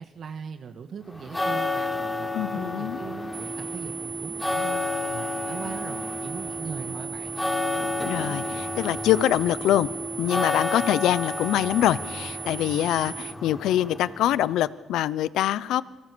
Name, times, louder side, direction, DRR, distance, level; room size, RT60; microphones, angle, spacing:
voice 1, 0.0-4.8 5.1-7.4, right 6 dB, 60° right, 7 dB, 1.5 m, -40 dB
sound 1, 1.1-14.7, left 2 dB, 10° left, 3.7 m, -31 dB
voice 2, 2.3-3.0 8.1-9.9 10.2-15.8, left 12 dB, 85° left, 18 dB, 0.7 m, -24 dB
sound 2, 3.3-13.3, right 8 dB, 75° right, 1.4 m, -38 dB
29.0 x 23.0 x 6.9 m, 1.2 s
cardioid pair, 90°, 0 cm